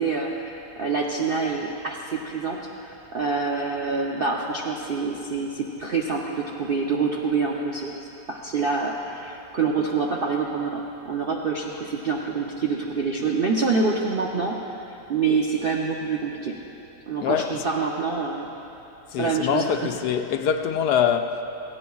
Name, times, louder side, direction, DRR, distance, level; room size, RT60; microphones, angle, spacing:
voice 1, 0.0-14.5 14.9-16.5 17.1-18.5 19.2-19.9, right 4 dB, 55° right, 0.6 m, -26 dB
voice 2, 19.1-21.4, left 8 dB, 75° left, 1.1 m, -24 dB
17.5 x 15.5 x 2.3 m
omnidirectional pair, 1.8 m